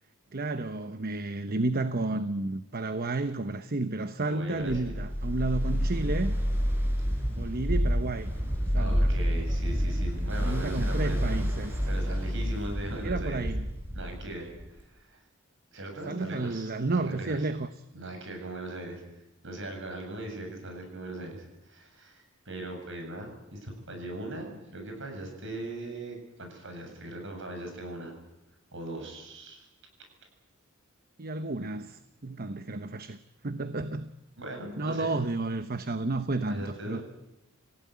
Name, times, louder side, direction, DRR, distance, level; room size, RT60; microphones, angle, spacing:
voice 1, 0.3-6.3 7.3-8.3 8.7-9.1 10.4-11.7 13.0-13.7 16.1-17.8 31.2-33.2 33.4-34.1 34.8-37.0, right 2 dB, 45° right, 10 dB, 1.0 m, -31 dB
voice 2, 4.2-5.0 8.8-11.4 11.9-13.5 13.9-15.2 15.7-17.4 17.9-19.0 19.4-28.1 28.7-29.7 31.6-31.7 34.4-35.3 36.5-37.0, right 1 dB, 60° right, 4 dB, 8.0 m, -39 dB
sound 1, 4.7-7.3 7.6-8.1 8.5-12.8, equal, 5° left, 0.9 m, -29 dB
Ocean, 4.9-14.8, equal, 10° right, 5.9 m, -35 dB
28.0 x 16.5 x 9.6 m, 0.93 s
head